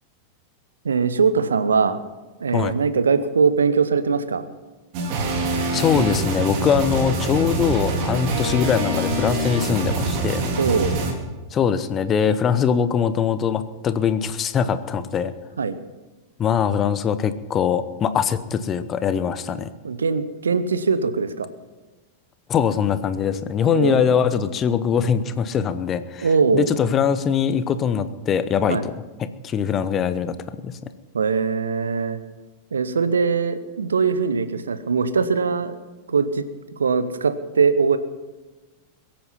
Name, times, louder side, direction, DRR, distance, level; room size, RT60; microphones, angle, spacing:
voice 1, 0.8-2.0 2.4-4.5 10.6-10.9 15.6-15.8 19.8-21.5 23.7-24.0 26.2-26.7 28.7-28.8 31.1-32.2 32.7-35.8 36.1-36.4 36.8-38.0, right 5 dB, 70° right, 13 dB, 0.9 m, -21 dB
sound 1, 4.9-11.1, right 2 dB, 45° right, 2.7 m, -24 dB
voice 2, 5.7-10.4 11.5-15.3 16.4-19.7 22.5-26.3 26.5-28.9 29.2-30.4 30.6-30.8, left 7 dB, 25° left, 13 dB, 0.9 m, -22 dB
22.0 x 8.8 x 5.7 m, 1.2 s
figure-of-eight pair, 90°, 0 cm